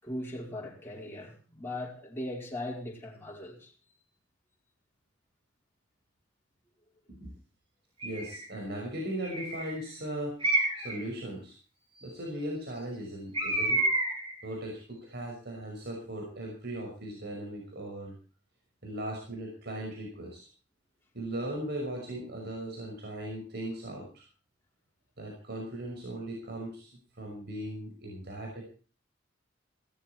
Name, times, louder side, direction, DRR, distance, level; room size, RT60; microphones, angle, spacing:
voice 1, 0.0-3.7, left 1 dB, 10° left, 4.9 m, -39 dB
Bird, 8.0-8.5 9.2-9.8 10.4-11.0 13.3-14.3, right 2 dB, 30° right, 6.2 m, -29 dB
voice 2, 8.0-10.5 10.8-11.5 12.0-13.8 14.4-18.1 18.8-20.4 21.1-24.2 25.2-26.9 27.2-28.6, right 1 dB, 60° right, 5.7 m, -38 dB
17.5 x 14.0 x 4.5 m
head